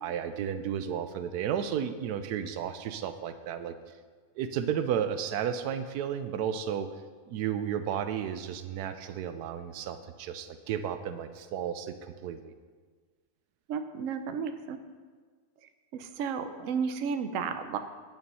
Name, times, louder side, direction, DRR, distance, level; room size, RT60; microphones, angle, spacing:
voice 1, 0.0-3.7 4.4-6.9 7.3-12.5, right 8 dB, 85° right, 10 dB, 1.1 m, -33 dB
voice 2, 13.7-14.8 15.9-17.8, right 6 dB, 65° right, 9 dB, 0.9 m, -33 dB
9.6 x 6.4 x 5.4 m, 1.5 s
omnidirectional pair, 1.6 m